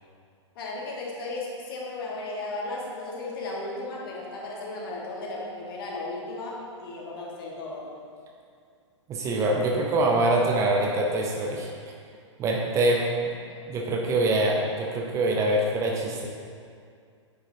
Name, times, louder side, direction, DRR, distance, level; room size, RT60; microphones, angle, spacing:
voice 1, 0.5-7.9 13.5-13.6, left 2 dB, 50° left, -2 dB, 1.3 m, -35 dB
voice 2, 9.1-11.7 12.4-13.1 13.7-16.3, right 2 dB, 20° right, 0 dB, 0.6 m, -24 dB
9.0 x 4.8 x 2.7 m, 2.3 s
figure-of-eight pair, 105°, 16 cm